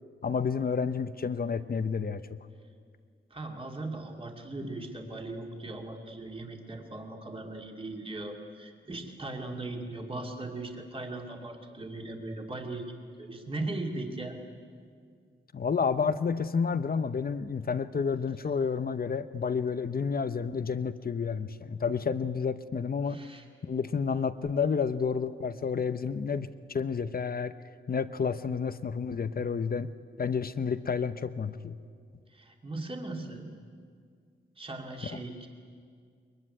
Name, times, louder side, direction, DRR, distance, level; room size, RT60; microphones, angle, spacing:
voice 1, 0.2-2.2 15.5-23.2 23.6-27.5 27.9-29.9 30.2-31.8 35.1-35.2, left 5 dB, 45° left, 12 dB, 0.8 m, -30 dB
voice 2, 3.3-12.9 13.2-14.4 23.1-23.4 32.3-33.5 34.6-35.5, right 2 dB, 25° right, 1 dB, 2.4 m, -38 dB
23.0 x 21.5 x 9.9 m, 2.2 s
wide cardioid pair, 140°, 21 cm